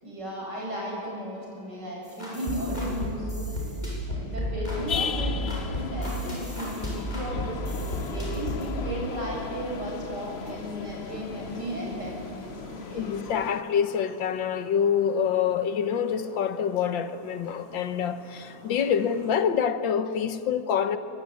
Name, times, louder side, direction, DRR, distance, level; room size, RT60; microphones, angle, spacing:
voice 1, 0.0-13.1, equal, 60° right, 8.6 m, -35 dB
sound 1, 2.0-8.7, left 1 dB, 20° left, 8.2 m, -32 dB
sound 2, 4.7-13.6, left 6 dB, 45° left, 0.9 m, -37 dB
sound 3, 11.1-19.4, right 1 dB, 80° right, 8.1 m, -49 dB
voice 2, 12.9-21.0, left 8 dB, 80° left, 1.8 m, -26 dB
24.0 x 22.0 x 9.9 m
omnidirectional pair, 2.0 m